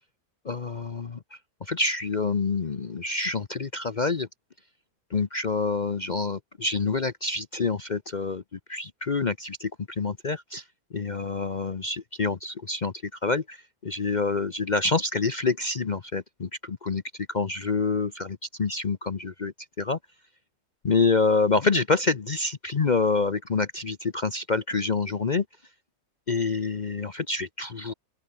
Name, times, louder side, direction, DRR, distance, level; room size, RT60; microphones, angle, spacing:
voice 1, 0.4-4.3 5.1-10.6 10.9-17.0 17.3-20.0 20.8-25.4 26.3-27.9, left 4 dB, 35° left, 0.8 m, -27 dB
open air
omnidirectional pair, 1.6 m